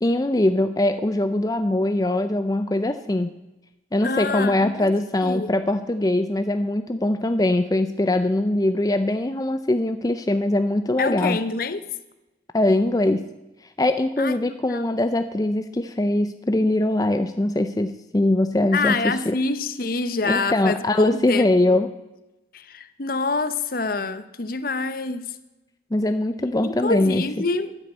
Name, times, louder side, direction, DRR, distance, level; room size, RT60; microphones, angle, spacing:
voice 1, 0.0-3.3 3.9-11.4 12.5-13.3 13.8-19.4 20.3-21.9 25.9-27.2, left 1 dB, 20° left, 0.5 m, -22 dB
voice 2, 4.0-4.9 5.2-5.5 11.0-11.9 14.2-14.4 14.7-14.9 18.7-21.8 22.5-25.3 26.6-27.8, left 3 dB, 50° left, 0.8 m, -26 dB
12.0 x 10.5 x 8.4 m
head